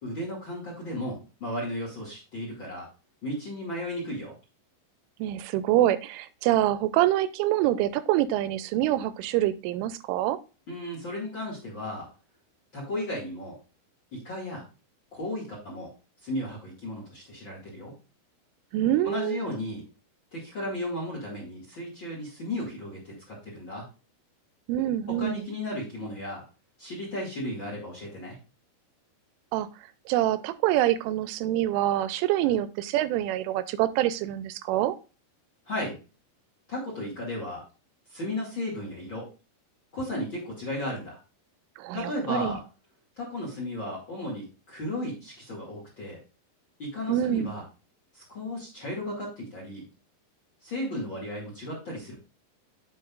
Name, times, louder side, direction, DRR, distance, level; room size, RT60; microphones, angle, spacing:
voice 1, 0.0-2.9 3.2-4.3 10.7-12.1 12.7-13.6 14.1-14.6 15.1-15.9 16.2-17.9 19.0-19.8 20.3-23.9 25.1-26.4 26.8-28.4 35.7-36.0 36.7-37.6 38.1-39.3 39.9-41.2 41.9-42.6 43.2-46.2 46.8-47.6 48.1-49.9 50.6-52.1, left 1 dB, 40° left, -3 dB, 1.9 m, -34 dB
voice 2, 5.2-10.4 18.7-19.4 24.7-25.5 29.5-29.7 30.1-35.0 41.8-42.6 47.1-47.5, right 13 dB, 90° right, 14 dB, 3.1 m, -25 dB
9.3 x 7.0 x 2.4 m, 0.32 s
omnidirectional pair, 5.5 m